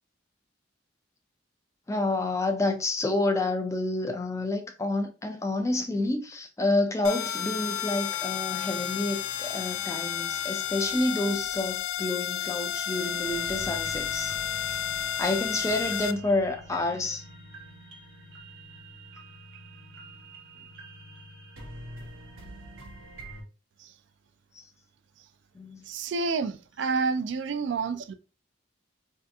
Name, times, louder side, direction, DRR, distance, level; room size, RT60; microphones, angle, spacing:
voice 1, 1.9-14.4 15.2-17.2 24.6-24.7 25.5-25.8, left 2 dB, 15° left, 0.4 m, -29 dB
sound 1, 7.0-16.1, left 9 dB, 90° left, 0.3 m, -32 dB
sound 2, 13.2-23.4, right 1 dB, 85° right, 1.1 m, -45 dB
voice 2, 25.9-28.1, right 4 dB, 60° right, 0.3 m, -29 dB
2.7 x 2.4 x 3.3 m
head